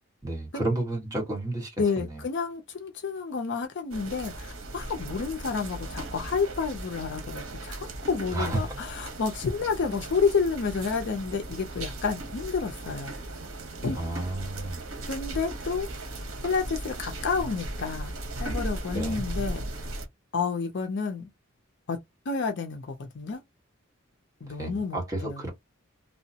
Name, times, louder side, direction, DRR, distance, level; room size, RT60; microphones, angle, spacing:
voice 1, 0.2-2.2 8.3-8.8 13.9-14.8 18.9-19.2 24.5-25.5, right 2 dB, 15° right, 1.3 m, -31 dB
voice 2, 1.8-7.8 8.1-13.1 13.8-14.0 15.1-15.9 16.4-18.1 18.4-19.6 20.3-21.3 21.9-22.0 22.3-23.4 24.4-25.4, left 5 dB, 55° left, 0.5 m, -30 dB
sound 1, 3.9-20.1, right 1 dB, 75° right, 0.9 m, -37 dB
2.8 x 2.1 x 2.7 m
head